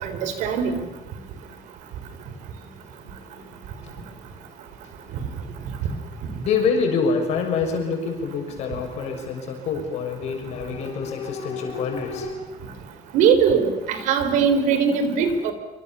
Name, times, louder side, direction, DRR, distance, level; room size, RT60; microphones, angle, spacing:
voice 1, 0.0-0.7 13.1-15.5, right 6 dB, 85° right, 9 dB, 4.2 m, -20 dB
voice 2, 6.4-12.4, left 5 dB, 65° left, 4 dB, 6.5 m, -26 dB
26.0 x 26.0 x 7.2 m, 1.0 s
cardioid pair, 175°, 12 cm